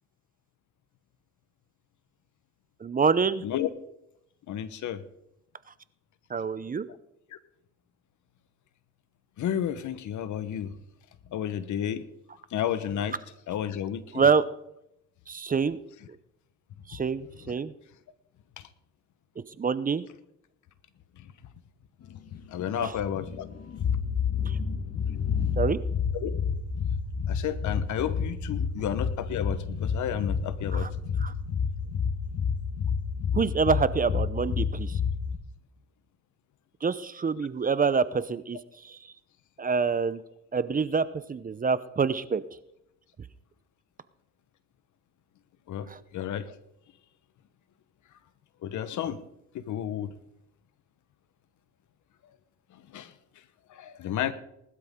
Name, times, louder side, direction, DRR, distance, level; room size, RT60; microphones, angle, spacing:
voice 1, 2.8-3.4 6.3-6.9 14.1-14.4 15.3-15.8 16.9-17.7 19.6-20.0 22.8-22.9 24.4-24.6 25.6-25.8 30.7-30.9 31.2-31.3 33.3-35.0 36.8-39.0 39.6-40.2 40.5-42.6 45.9-46.0, right 5 dB, 30° right, 15 dB, 0.7 m, -26 dB
voice 2, 4.5-5.0 7.3-7.4 9.4-10.7 11.3-12.0 12.5-13.1 13.5-14.2 18.6-18.7 21.2-21.3 22.5-23.5 24.9-25.1 26.1-26.3 27.3-31.0 45.7-46.5 48.6-49.2 49.5-50.2 52.7-53.1 53.7-54.3, left 10 dB, 75° left, 14 dB, 1.1 m, -32 dB
sound 1, 22.8-35.4, left 6 dB, 55° left, 1.6 m, -29 dB
19.5 x 12.0 x 3.7 m, 0.81 s
cardioid pair, 90°, 30 cm